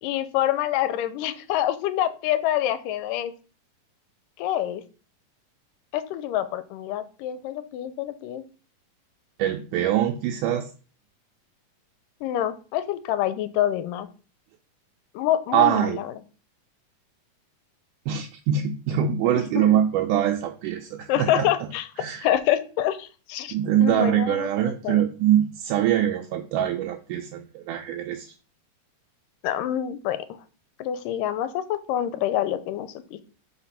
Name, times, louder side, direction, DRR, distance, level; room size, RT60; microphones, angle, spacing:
voice 1, 0.0-3.3 4.4-4.8 5.9-8.4 12.2-14.1 15.2-16.1 19.6-19.7 21.1-21.9 22.2-23.6 23.8-25.0 29.4-30.3 30.8-33.2, left 12 dB, 85° left, 13 dB, 2.2 m, -26 dB
voice 2, 9.4-10.7 15.5-16.0 18.1-21.5 22.0-22.3 23.5-28.3, right 10 dB, 80° right, 3 dB, 2.1 m, -23 dB
5.0 x 4.4 x 5.6 m, 0.36 s
omnidirectional pair, 3.8 m